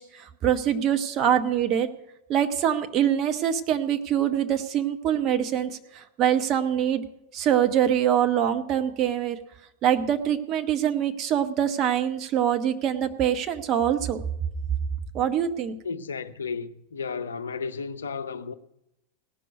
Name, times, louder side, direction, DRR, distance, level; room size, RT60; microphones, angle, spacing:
voice 1, 0.0-1.9 2.3-7.0 7.3-9.4 9.8-14.2 15.1-15.7, right 9 dB, 35° right, 1.0 m, -24 dB
voice 2, 15.8-18.5, left 5 dB, 70° left, 0.6 m, -33 dB
17.5 x 6.2 x 8.2 m
figure-of-eight pair, 90°, 0 cm